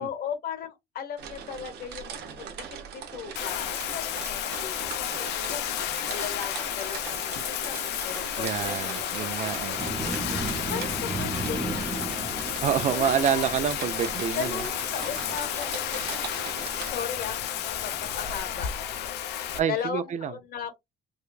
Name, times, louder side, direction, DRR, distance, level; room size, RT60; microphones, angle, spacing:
voice 1, 0.0-5.7 6.1-9.8 10.0-10.1 10.5-12.0 12.9-13.5 14.3-16.1 16.8-18.7 19.7-20.8, left 7 dB, 65° left, 1.1 m, -37 dB
sound 1, 1.2-16.9, right 7 dB, 80° right, 1.0 m, -40 dB
Bathtub (filling or washing), 3.3-19.6, left 11 dB, 80° left, 0.7 m, -32 dB
voice 2, 8.4-9.8 12.6-14.6 19.6-20.3, right 9 dB, 45° right, 0.4 m, -27 dB
sound 2, 9.8-19.0, right 2 dB, 10° right, 0.7 m, -37 dB
4.9 x 2.2 x 2.3 m
cardioid pair, 110°, 17 cm